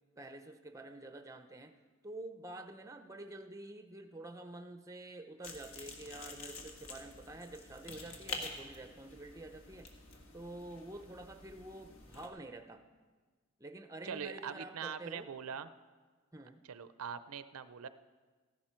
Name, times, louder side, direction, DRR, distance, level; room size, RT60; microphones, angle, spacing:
voice 1, 0.2-1.7 2.0-9.9 10.3-12.8 13.6-15.3 16.3-16.6, right 2 dB, 15° right, 7 dB, 0.5 m, -48 dB
sound 1, 5.4-12.3, left 3 dB, 70° left, 1.6 m, -48 dB
voice 2, 14.0-15.7 16.7-17.9, right 7 dB, 85° right, 13 dB, 0.5 m, -42 dB
14.5 x 11.5 x 4.4 m, 1.4 s
head